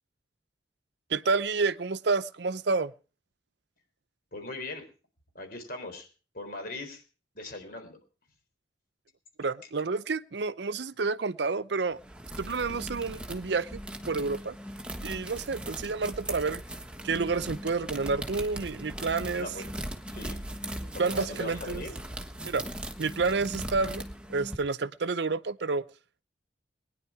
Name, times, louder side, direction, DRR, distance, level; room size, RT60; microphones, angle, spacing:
voice 1, 1.1-2.9 9.4-12.0 12.4-13.8 14.1-14.6 15.0-16.6 17.0-19.5 21.0-21.8 22.4-22.6 23.0-24.0 24.3-25.9, right 4 dB, 65° right, 0.6 m, -29 dB
voice 2, 4.3-4.8 5.3-6.1 6.3-7.0 7.3-8.0 19.3-19.6 20.1-20.4 20.9-21.9, left 2 dB, 50° left, 4.0 m, -39 dB
sound 1, 11.9-24.6, right 1 dB, 5° right, 1.3 m, -39 dB
20.5 x 10.5 x 4.8 m
head